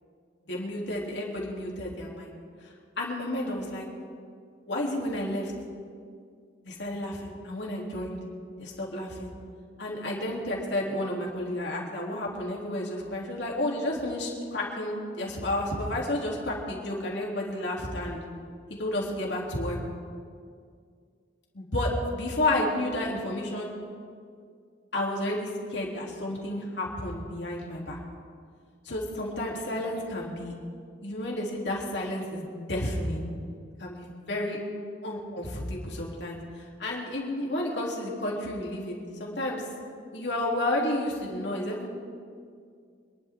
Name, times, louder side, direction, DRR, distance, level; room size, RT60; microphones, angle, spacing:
voice 1, 0.5-2.3 2.6-3.8 4.7-5.5 6.6-8.2 8.6-9.3 9.8-18.2 18.8-19.8 21.5-23.7 24.9-28.0 28.8-30.5 31.0-33.3 33.8-34.6 35.0-39.7 40.1-41.9, left 1 dB, 75° left, -3 dB, 3.3 m, -31 dB
27.0 x 11.5 x 3.8 m, 2.2 s
head